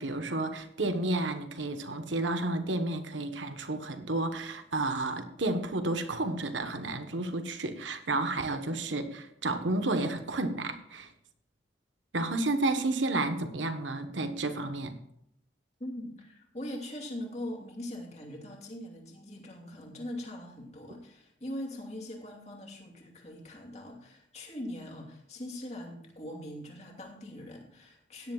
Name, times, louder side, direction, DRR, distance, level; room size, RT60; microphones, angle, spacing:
voice 1, 0.0-11.1 12.1-15.0, right 2 dB, 90° right, 8 dB, 1.3 m, -31 dB
voice 2, 15.8-28.3, left 1 dB, 35° left, 1 dB, 2.7 m, -41 dB
17.0 x 11.0 x 2.5 m, 0.75 s
head